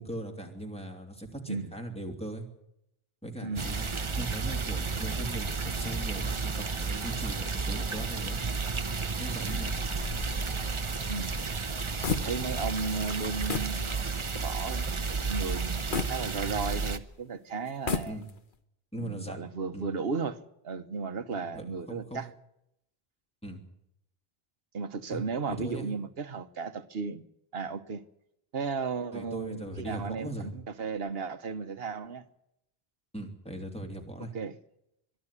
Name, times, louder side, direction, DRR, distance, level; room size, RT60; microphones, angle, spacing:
voice 1, 0.0-2.5 3.2-3.9 4.2-8.4 9.1-9.9 18.1-18.3 18.9-19.5 19.7-19.8 21.5-22.2 23.4-23.6 25.1-25.2 25.6-25.9 29.1-30.5 33.1-34.3, right 1 dB, 5° left, 2.9 m, -39 dB
sound 1, 3.6-17.0, right 4 dB, 30° right, 0.9 m, -32 dB
sound 2, 9.9-12.7 13.0-13.2 13.5-13.8 14.3-14.4 15.9-16.9 17.7-18.5, left 5 dB, 55° left, 1.3 m, -35 dB
voice 2, 12.2-14.9 15.2-18.2 19.0-22.3 24.7-27.2 27.5-28.0 28.5-30.5 30.8-32.2 34.3-34.5, right 5 dB, 70° right, 1.3 m, -35 dB
22.5 x 13.0 x 9.6 m
omnidirectional pair, 1.0 m